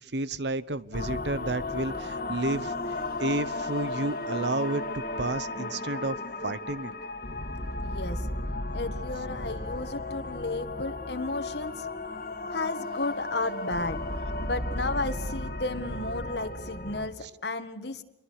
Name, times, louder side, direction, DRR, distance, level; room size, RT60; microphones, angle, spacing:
voice 1, 0.0-6.9 17.2-17.3, right 2 dB, 70° right, 16 dB, 1.0 m, -31 dB
sound 1, 0.9-17.1, left 2 dB, 50° left, 2.1 m, -34 dB
voice 2, 7.8-8.2 8.7-11.9 12.5-14.0 14.4-18.0, left 2 dB, 70° left, 7 dB, 1.8 m, -33 dB
27.5 x 23.0 x 6.5 m, 0.87 s
head